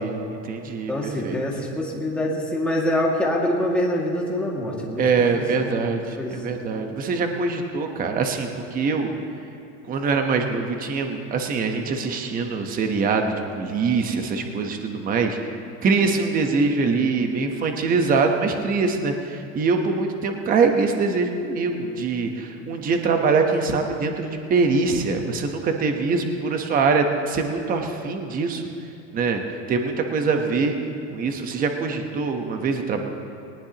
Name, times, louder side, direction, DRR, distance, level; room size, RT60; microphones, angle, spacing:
voice 1, 0.0-1.4 5.0-9.1 9.9-15.4 15.8-28.6 29.1-29.4 29.7-30.8 31.1-33.0, right 4 dB, 25° right, 4 dB, 1.0 m, -23 dB
voice 2, 0.9-5.5 6.2-6.3, left 1 dB, 5° left, -4 dB, 2.1 m, -25 dB
21.5 x 19.0 x 2.9 m, 2.8 s
supercardioid pair, 155°, 36 cm